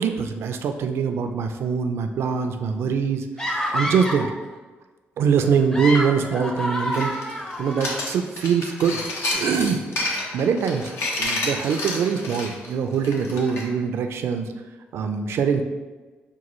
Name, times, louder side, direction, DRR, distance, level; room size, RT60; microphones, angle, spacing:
voice 1, 0.0-3.3 3.7-4.3 5.2-7.1 7.6-9.0 9.3-9.8 10.3-10.9 11.2-14.5 14.9-15.6, right 6 dB, 75° right, 6 dB, 0.4 m, -23 dB
sound 1, 3.4-4.3 5.5-7.9, equal, 15° left, 0.6 m, -28 dB
sound 2, 6.9-13.6, left 2 dB, 80° left, 0.8 m, -29 dB
6.1 x 2.3 x 3.0 m, 1.3 s
cardioid pair, 75°, 4 cm